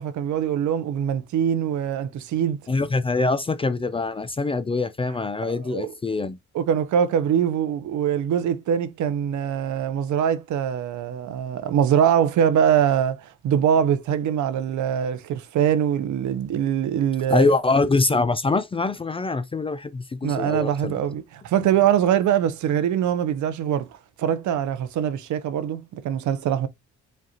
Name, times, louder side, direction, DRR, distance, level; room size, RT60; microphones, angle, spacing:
voice 1, 0.0-2.6 5.4-5.9 6.5-17.5 20.2-26.7, right 9 dB, 70° right, 0.7 m, -23 dB
voice 2, 2.7-6.4 17.3-20.9 21.6-21.7, left 3 dB, 20° left, 0.3 m, -24 dB
5.1 x 2.4 x 2.8 m
cardioid pair, 90°, 30 cm